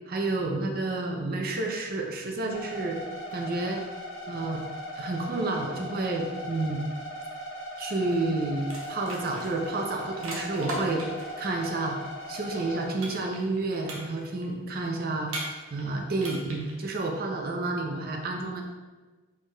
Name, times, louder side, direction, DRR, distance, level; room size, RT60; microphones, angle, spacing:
voice 1, 0.1-3.0 3.3-3.8 4.3-4.6 5.0-6.9 7.8-12.0 12.3-18.6, right 2 dB, 45° right, 2 dB, 0.5 m, -30 dB
sound 1, 2.5-12.9, equal, 60° left, 1.4 m, -39 dB
sound 2, 8.1-8.3 8.6-11.3 13.0-13.6 13.9-14.4 15.3-15.9 16.2-16.7, right 1 dB, 70° right, 0.9 m, -37 dB
4.6 x 4.5 x 2.3 m, 1.3 s
head